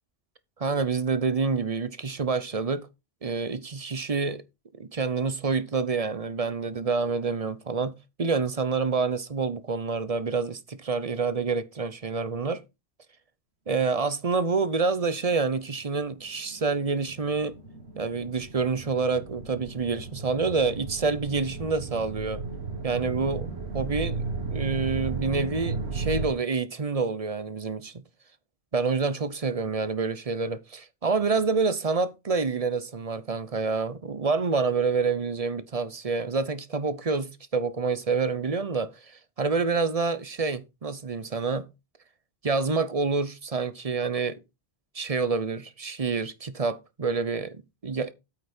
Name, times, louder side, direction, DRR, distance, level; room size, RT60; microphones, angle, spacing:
voice 1, 0.6-2.9 3.2-4.4 4.8-12.6 13.7-17.5 18.0-22.4 22.8-23.5 23.7-24.2 24.5-28.0 28.7-41.7 42.4-44.4 44.9-48.1, right 4 dB, 35° right, 0.8 m, -27 dB
sound 1, 15.9-26.3, right 4 dB, 75° right, 2.0 m, -35 dB
8.5 x 8.4 x 4.4 m
omnidirectional pair, 1.1 m